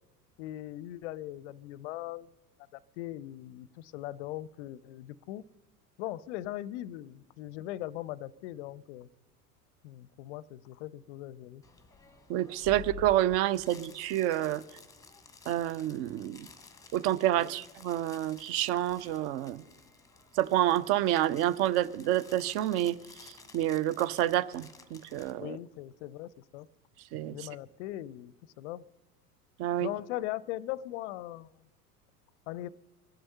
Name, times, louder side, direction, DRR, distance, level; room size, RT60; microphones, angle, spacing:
voice 1, 0.4-2.3 2.7-5.4 6.0-9.1 9.8-11.6 17.4-17.5 25.4-26.7 27.3-28.8 29.8-31.5 32.5-32.7, left 14 dB, 50° left, 0.5 m, -40 dB
sound 1, 11.6-25.3, left 6 dB, 5° left, 1.1 m, -52 dB
voice 2, 12.3-14.6 15.5-16.5 16.9-19.6 20.4-23.0 23.2-25.6 27.1-27.4 29.6-29.9, right 13 dB, 30° right, 0.4 m, -28 dB
22.5 x 7.7 x 5.5 m
figure-of-eight pair, 80°, 46 cm